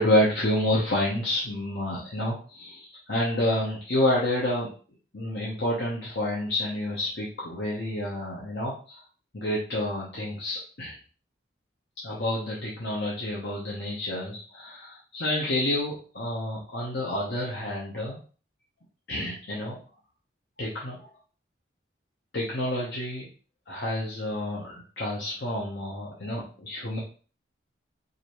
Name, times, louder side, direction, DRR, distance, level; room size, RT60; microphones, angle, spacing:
voice 1, 0.0-4.7 5.1-9.0 9.3-11.0 12.0-18.2 19.1-19.8 20.6-21.0 22.3-23.3 23.7-27.0, left 1 dB, 60° left, -4 dB, 1.0 m, -29 dB
4.9 x 2.7 x 3.1 m, 0.38 s
head